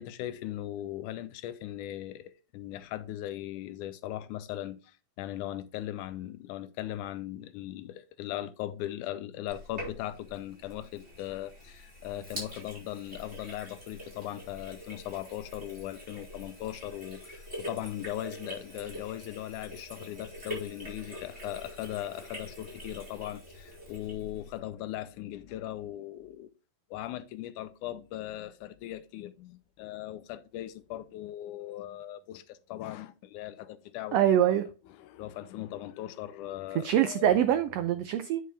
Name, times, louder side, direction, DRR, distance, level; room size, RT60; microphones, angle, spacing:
voice 1, 0.0-26.5 26.9-34.5 35.0-37.3, left 13 dB, 85° left, 2.2 m, -39 dB
Sink (filling or washing), 9.5-24.6, equal, 20° right, 4.8 m, -45 dB
voice 2, 34.1-34.7 36.8-38.4, right 10 dB, 85° right, 1.4 m, -24 dB
9.3 x 5.7 x 3.3 m
omnidirectional pair, 3.5 m